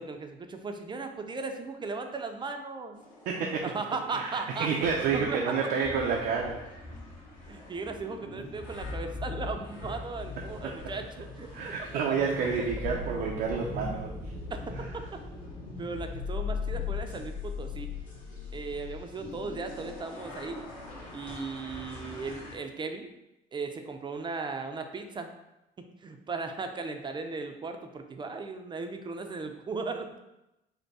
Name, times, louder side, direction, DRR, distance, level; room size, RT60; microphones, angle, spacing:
voice 1, 0.0-3.0 3.6-4.7 5.1-5.4 7.5-11.1 11.4-11.5 14.5-15.2 15.8-17.9 18.5-20.7 21.1-23.1 23.5-25.4 26.0-30.1, right 4 dB, 25° right, 5 dB, 0.5 m, -37 dB
sound 1, 2.9-22.6, left 3 dB, 50° left, 1.7 m, -40 dB
voice 2, 3.3-3.6 4.1-6.6 10.6-10.7 11.5-14.1 14.8-14.9, right 5 dB, 85° right, -1 dB, 0.6 m, -29 dB
5.2 x 2.2 x 4.7 m, 0.90 s
cardioid pair, 110°, 17 cm